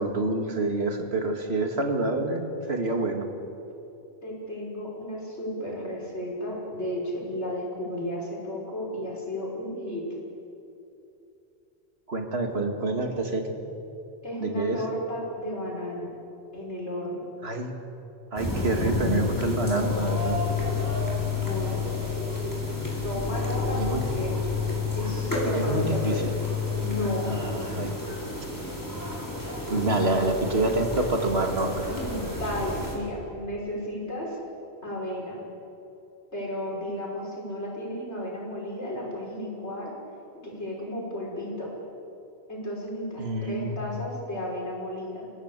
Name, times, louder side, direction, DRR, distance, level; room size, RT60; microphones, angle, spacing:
voice 1, 0.0-3.3 12.1-13.5 14.4-14.8 17.4-17.7 18.3-20.4 23.7-24.0 25.5-26.2 27.3-27.9 29.7-31.9 43.2-43.8, right 2 dB, 65° right, 4 dB, 2.4 m, -27 dB
voice 2, 4.2-10.0 14.2-16.1 16.5-17.3 21.4-21.9 23.0-24.4 24.9-26.3 26.7-27.5 31.8-34.4 34.8-35.4 36.3-39.9 40.4-41.7 42.5-45.3, left 1 dB, 75° left, -3 dB, 6.2 m, -33 dB
sound 1, 18.4-32.9, left 4 dB, 15° left, 4.8 m, -30 dB
28.0 x 17.5 x 8.3 m, 2.9 s
omnidirectional pair, 1.2 m